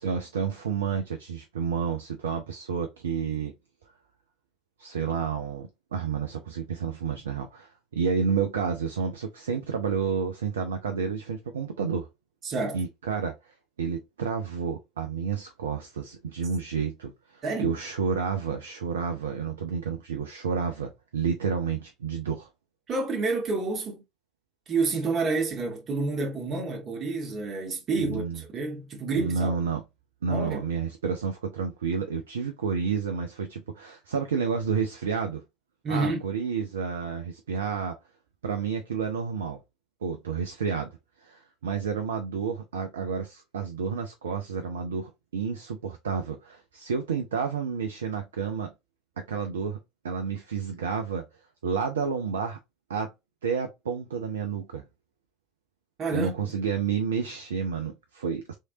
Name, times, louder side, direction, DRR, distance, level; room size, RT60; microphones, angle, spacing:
voice 1, 0.0-3.5 4.8-12.1 12.7-13.3 13.8-22.5 28.0-28.4 29.2-29.8 30.2-35.4 35.9-38.0 38.4-39.6 40.0-40.9 41.2-48.7 49.2-49.8 50.0-51.2 51.6-52.6 52.9-53.1 53.4-54.8 56.1-58.5, right 6 dB, 70° right, 0.5 m, -30 dB
voice 2, 12.4-12.8 17.4-17.8 22.9-24.0 24.7-29.5 30.3-30.6 35.8-36.2 56.0-56.5, right 3 dB, 35° right, 1.5 m, -29 dB
3.7 x 3.2 x 2.7 m
figure-of-eight pair, 70°, 0 cm